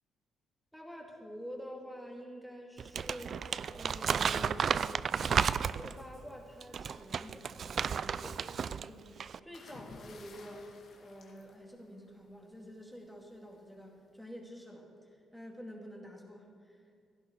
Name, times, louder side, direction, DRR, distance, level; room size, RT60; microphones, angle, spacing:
voice 1, 0.7-4.9 5.1-10.7 11.0-16.8, equal, ahead, 0 dB, 2.4 m, -48 dB
Crumpling crinkling, 2.8-6.0 6.6-8.9 9.2-9.4, right 7 dB, 50° right, 0.3 m, -32 dB
sound 1, 9.5-12.3 13.5-13.8, left 3 dB, 60° left, 2.0 m, -53 dB
16.5 x 11.0 x 4.7 m, 2.1 s
cardioid pair, 90°, 0 cm